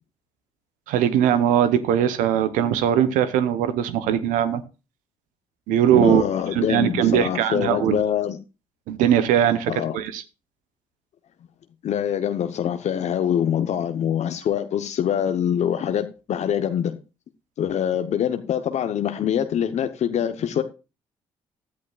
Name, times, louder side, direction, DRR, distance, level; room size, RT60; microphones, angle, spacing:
voice 1, 0.9-4.6 5.7-6.2 6.5-8.0 8.9-10.2, right 9 dB, 75° right, 0.9 m, -20 dB
voice 2, 6.0-8.4 9.7-10.0 11.8-17.0 17.6-20.6, left 9 dB, 60° left, 0.9 m, -24 dB
17.0 x 11.0 x 2.4 m
hypercardioid pair, 50°, 13 cm